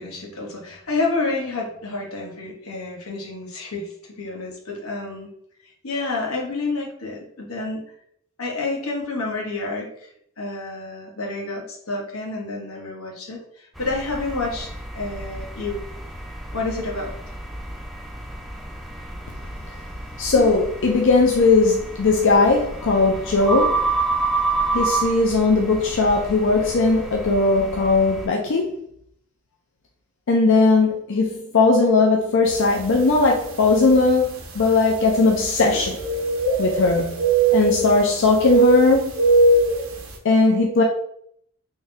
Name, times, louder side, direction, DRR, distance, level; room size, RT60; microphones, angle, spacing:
voice 1, 0.0-3.9 4.2-5.3 5.8-7.8 8.4-10.1 10.4-14.7 14.9-15.8 16.5-17.1, left 3 dB, 90° left, 1.0 m, -29 dB
sound 1, 13.8-28.3, right 3 dB, ahead, 0.4 m, -29 dB
voice 2, 20.2-23.8 24.7-28.8 30.3-36.0 36.6-37.2 37.5-39.1 40.2-40.8, left 3 dB, 60° left, 0.5 m, -18 dB
sound 2, 32.8-32.9 33.7-33.8 35.7-36.9 37.2-38.0 38.4-39.8, right 3 dB, 75° right, 0.8 m, -19 dB
3.5 x 2.7 x 3.3 m
head